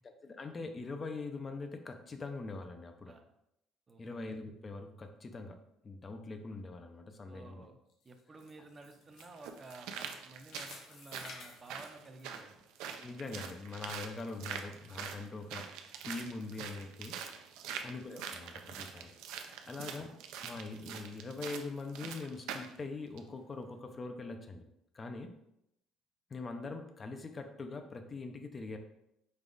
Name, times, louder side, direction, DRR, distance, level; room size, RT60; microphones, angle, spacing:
voice 1, 0.0-3.2 4.0-7.6 13.0-17.2 17.8-19.1 19.7-20.1 20.4-24.7 24.9-25.4 26.3-28.8, left 3 dB, 25° left, 6 dB, 0.4 m, -43 dB
voice 2, 7.3-7.8 8.0-12.6 17.6-17.9 19.6-20.0, right 2 dB, 20° right, 5 dB, 0.6 m, -53 dB
sound 1, 7.9-12.9 13.2-13.3 13.9-14.0, left 4 dB, 75° left, 0.9 m, -53 dB
sound 2, 8.3-8.4 9.2-22.8 23.2-23.3, right 7 dB, 85° right, 0.5 m, -44 dB
5.3 x 2.3 x 3.8 m, 0.80 s
cardioid pair, 140°, 0 cm